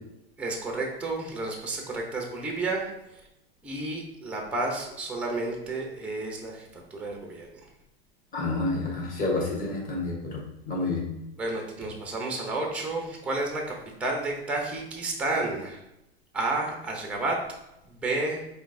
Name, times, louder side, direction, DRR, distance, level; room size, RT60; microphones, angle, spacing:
voice 1, 0.4-2.9 3.6-7.5 11.4-15.8 16.3-17.5 17.9-18.4, right 2 dB, 5° right, 1 dB, 0.6 m, -31 dB
voice 2, 8.3-11.0, left 2 dB, 25° left, -2 dB, 1.3 m, -29 dB
5.1 x 3.3 x 2.6 m, 0.88 s
supercardioid pair, 130°, 31 cm